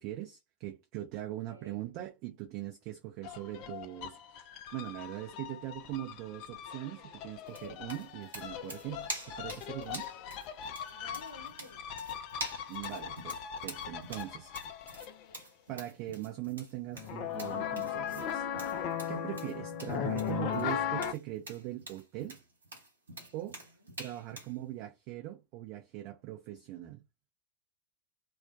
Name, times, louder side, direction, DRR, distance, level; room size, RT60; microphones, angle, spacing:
voice 1, 0.0-9.1 9.4-10.1 12.7-13.4 13.6-14.5 15.7-22.4 23.3-23.6 24.0-27.0, right 14 dB, 45° right, 0.5 m, -41 dB
voice 2, 1.3-1.8 10.8-11.9 12.9-13.3 23.2-23.9 24.3-24.4, left 2 dB, 85° left, 0.8 m, -54 dB
sound 1, 3.2-15.3 17.0-21.1, left 9 dB, 40° left, 0.4 m, -38 dB
sound 2, 7.5-24.6, right 2 dB, 70° right, 0.9 m, -46 dB
2.3 x 2.1 x 2.5 m
figure-of-eight pair, 90°, 0 cm